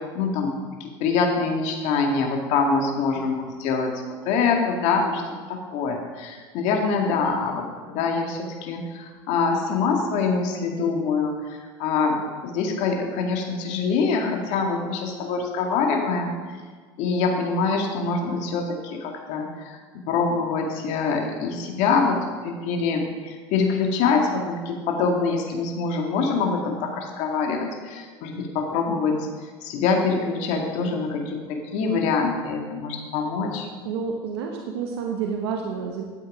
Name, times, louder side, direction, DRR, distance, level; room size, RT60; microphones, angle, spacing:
voice 1, 0.1-0.5 0.8-5.2 5.5-16.4 17.0-19.8 20.1-22.2 22.4-29.3 29.6-33.7, left 4 dB, 65° left, 2 dB, 2.1 m, -25 dB
voice 2, 33.8-36.0, right 6 dB, 80° right, 1 dB, 1.3 m, -29 dB
12.0 x 8.2 x 5.0 m, 1.5 s
hypercardioid pair, 95°, 13 cm